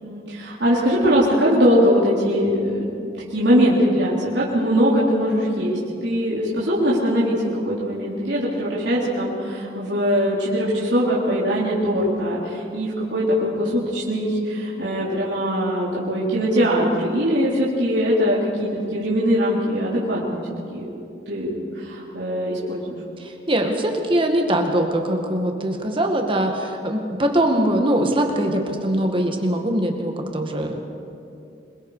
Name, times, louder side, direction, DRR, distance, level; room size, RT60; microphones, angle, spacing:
voice 1, 0.0-2.9 3.3-20.4 20.7-20.9 21.3-23.0, equal, 70° right, -7 dB, 3.5 m, -21 dB
voice 2, 23.2-30.8, right 1 dB, 30° right, 3 dB, 1.9 m, -22 dB
26.5 x 22.5 x 5.0 m, 2.6 s
head